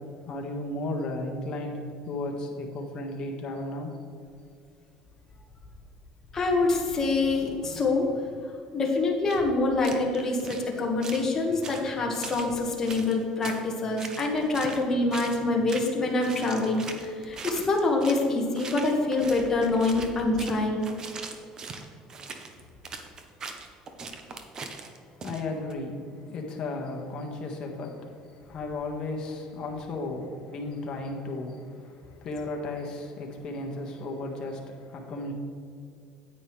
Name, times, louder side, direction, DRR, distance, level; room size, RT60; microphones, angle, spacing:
voice 1, 0.3-3.9 24.8-35.3, left 2 dB, 40° left, 1 dB, 1.6 m, -35 dB
voice 2, 6.3-8.1 8.7-20.8, left 3 dB, 25° left, -1 dB, 1.6 m, -26 dB
sound 1, 9.3-9.4 9.8-10.7 11.0-11.3 11.6-12.5 12.9-13.6 14.0-14.8 15.1-15.4 15.7-18.3 18.6-25.7, right 4 dB, 30° right, 0.9 m, -40 dB
9.6 x 8.9 x 3.3 m, 2.4 s
cardioid pair, 125°, 2 cm